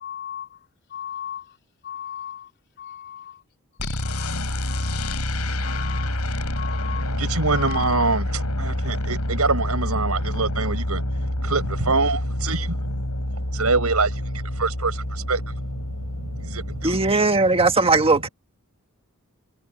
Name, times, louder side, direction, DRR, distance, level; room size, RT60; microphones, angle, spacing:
voice 1, 0.0-0.5 0.9-1.4 1.8-2.4 2.8-3.2 3.8-4.3 4.7-5.1 5.6-6.1 6.6-7.0 7.5-8.0, left 9 dB, 50° left, 3.3 m, -35 dB
sound 1, 3.8-17.1, left 1 dB, 90° left, 6.3 m, -27 dB
voice 2, 6.9-12.8 13.5-15.5 16.2-17.0, right 3 dB, 80° right, 6.7 m, -25 dB
voice 3, 16.8-18.3, right 3 dB, 25° right, 1.6 m, -18 dB
head